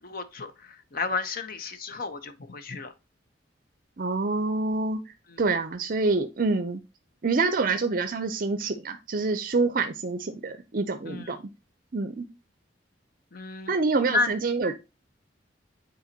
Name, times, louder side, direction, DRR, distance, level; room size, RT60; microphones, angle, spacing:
voice 1, 0.0-2.9 5.3-5.4 11.1-11.4 13.3-13.8 14.1-14.3, left 3 dB, 50° left, 0.8 m, -32 dB
voice 2, 4.0-6.8 7.2-11.4 11.9-12.3 13.7-14.8, right 3 dB, 50° right, 0.5 m, -27 dB
8.6 x 4.0 x 2.8 m
head